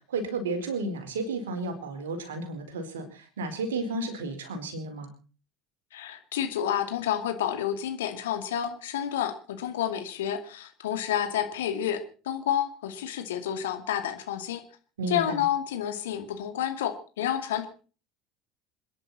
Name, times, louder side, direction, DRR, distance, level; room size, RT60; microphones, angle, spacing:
voice 1, 0.1-5.1 15.0-15.4, right 3 dB, 70° right, 6 dB, 4.2 m, -32 dB
voice 2, 5.9-14.6 15.1-17.7, left 10 dB, 70° left, 8 dB, 2.3 m, -30 dB
27.0 x 10.5 x 4.2 m, 0.38 s
figure-of-eight pair, 65°, 0 cm